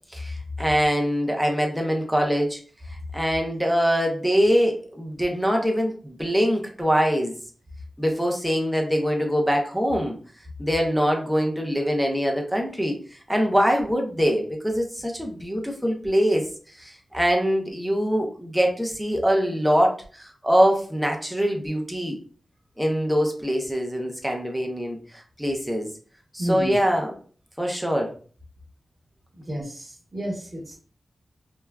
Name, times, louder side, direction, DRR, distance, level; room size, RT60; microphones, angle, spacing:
voice 1, 0.1-2.6 3.1-7.4 8.0-10.2 10.6-13.0 13.3-16.5 16.8-22.2 22.8-25.9 26.3-27.1 27.6-28.1, equal, ahead, 1 dB, 0.5 m, -23 dB
voice 2, 26.4-26.8 29.4-30.7, equal, 35° right, -4 dB, 1.0 m, -31 dB
3.3 x 2.2 x 2.3 m, 0.42 s
wide cardioid pair, 125°, 0 cm